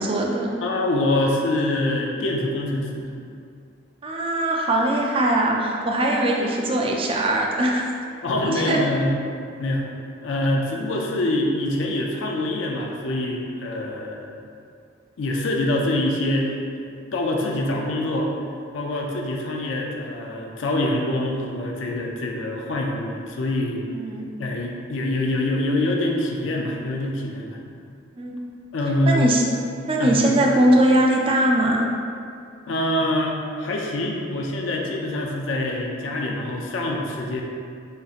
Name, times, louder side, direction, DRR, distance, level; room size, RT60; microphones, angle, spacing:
voice 1, 0.0-0.6 4.0-7.9 8.5-8.8 23.9-24.3 28.2-28.4 29.1-29.4 29.9-31.9, right 1 dB, 30° right, -1 dB, 0.4 m, -21 dB
voice 2, 0.6-3.1 8.2-9.1 9.6-9.9 10.2-14.4 15.2-16.6 17.1-18.3 18.7-23.8 24.4-27.6 28.7-29.3 30.0-30.5 32.7-37.4, left 1 dB, 85° left, 0 dB, 0.5 m, -25 dB
5.0 x 2.8 x 2.4 m, 2.4 s
head